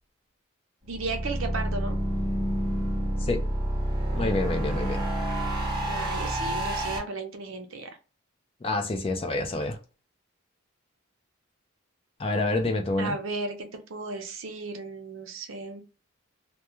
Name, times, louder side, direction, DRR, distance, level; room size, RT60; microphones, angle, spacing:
sound 1, 0.8-7.0, right 1 dB, 25° right, 0.8 m, -28 dB
voice 1, 0.9-2.0 5.8-8.0 13.0-15.8, right 3 dB, 75° right, 0.6 m, -35 dB
voice 2, 4.1-5.0 8.6-9.8 12.2-13.1, left 2 dB, 25° left, 0.4 m, -27 dB
2.2 x 2.2 x 2.9 m
head